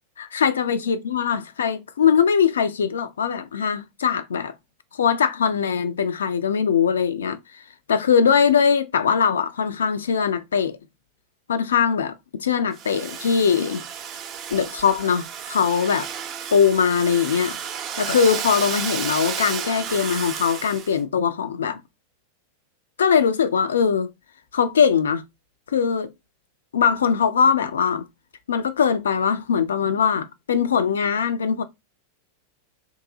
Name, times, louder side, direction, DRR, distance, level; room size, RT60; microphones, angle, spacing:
voice 1, 0.2-4.5 4.9-7.4 7.9-10.8 11.5-13.8 14.5-16.1 16.5-17.6 18.0-21.8 23.0-24.1 24.5-25.2 25.7-26.1 26.7-28.0 28.5-31.6, left 7 dB, 65° left, 0.4 m, -21 dB
Domestic sounds home sounds, 12.7-21.0, right 8 dB, 35° right, 0.4 m, -32 dB
2.8 x 2.6 x 3.6 m
figure-of-eight pair, 90°, 0 cm